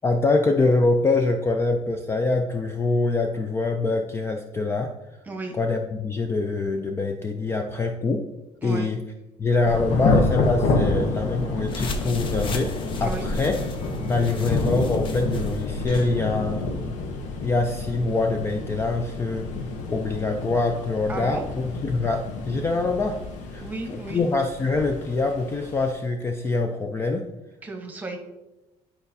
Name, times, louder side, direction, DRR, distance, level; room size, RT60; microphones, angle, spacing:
voice 1, 0.0-4.9 5.5-8.2 8.6-9.0 9.4-13.6 14.1-16.6 17.4-19.5 19.9-23.2 23.5-27.3, left 3 dB, 20° left, 4 dB, 0.4 m, -24 dB
Thunder / Rain, 9.7-25.9, left 3 dB, 90° left, 1.0 m, -28 dB
sound 1, 11.6-16.1, left 1 dB, 45° left, 0.8 m, -35 dB
voice 2, 21.1-21.4 23.6-24.2 27.6-28.2, right 3 dB, 15° right, 2 dB, 1.1 m, -34 dB
10.5 x 4.8 x 2.7 m, 1.0 s
cardioid pair, 155°, 12 cm